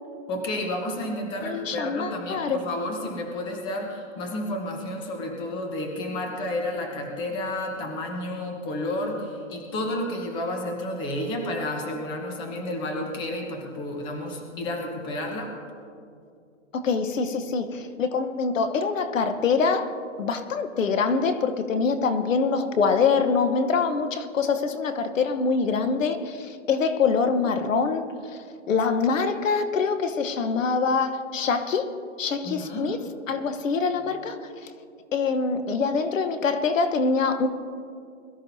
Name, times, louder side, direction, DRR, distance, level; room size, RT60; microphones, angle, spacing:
voice 1, 0.3-15.5 32.4-32.9, left 1 dB, 10° left, 1.0 m, -31 dB
voice 2, 1.4-2.6 16.7-28.4 28.7-31.9 32.2-33.0 33.3-34.7 35.1-37.5, left 5 dB, 70° left, 1.1 m, -24 dB
22.0 x 13.0 x 2.7 m
hypercardioid pair, 165°, 40 cm